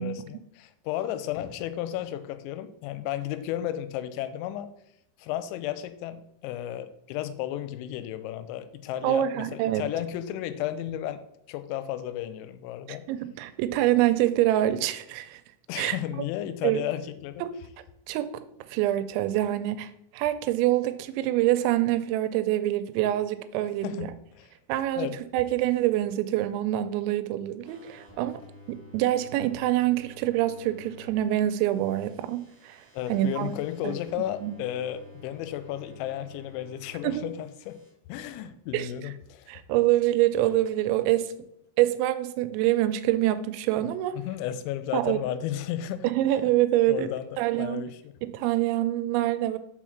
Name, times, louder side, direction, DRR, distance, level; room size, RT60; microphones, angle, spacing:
voice 1, 0.0-4.7 5.2-11.2 11.5-13.1 15.7-17.4 23.8-24.5 24.9-25.2 32.9-37.8 38.1-39.5 44.2-46.1 46.9-48.0, left 12 dB, 90° left, 2.9 m, -33 dB
voice 2, 9.0-9.9 12.9-15.4 15.8-16.0 16.6-16.8 17.4-17.6 18.1-18.3 18.7-24.1 24.7-28.4 28.7-32.8 33.1-33.5 33.8-33.9 34.2-34.6 37.0-37.3 38.7-38.9 39.5-41.3 41.8-44.2 44.9-45.2 46.0-47.1 47.4-47.9 48.2-49.6, right 14 dB, 85° right, 2.9 m, -25 dB
sound 1, 27.6-31.1 31.4-37.1 37.4-37.9, left 2 dB, 20° right, 0.5 m, -51 dB
6.2 x 4.6 x 5.7 m
omnidirectional pair, 5.3 m